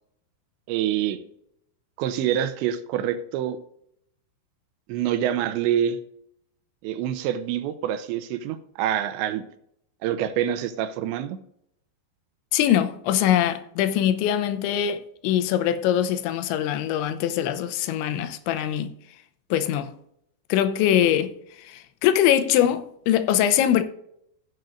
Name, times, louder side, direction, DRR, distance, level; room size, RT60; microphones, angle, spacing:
voice 1, 0.7-1.2 2.0-3.6 4.9-6.0 6.8-9.4 10.0-11.4, right 10 dB, 85° right, 3.0 m, -26 dB
voice 2, 12.5-18.9 19.5-19.9 20.5-23.8, left 10 dB, 85° left, 3.1 m, -23 dB
16.5 x 7.9 x 2.5 m
omnidirectional pair, 5.2 m